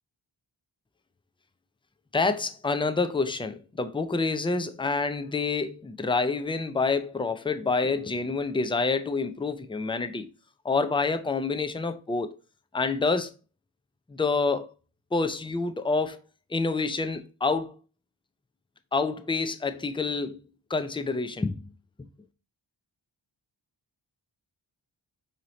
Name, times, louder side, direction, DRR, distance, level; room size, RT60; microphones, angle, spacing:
voice 1, 2.1-10.3 10.6-12.4 12.7-13.3 14.1-14.7 15.1-16.2 16.5-17.8 18.9-20.4 20.7-21.6, left 4 dB, 10° left, 0.4 m, -27 dB
4.7 x 2.9 x 3.9 m
wide cardioid pair, 50°, 48 cm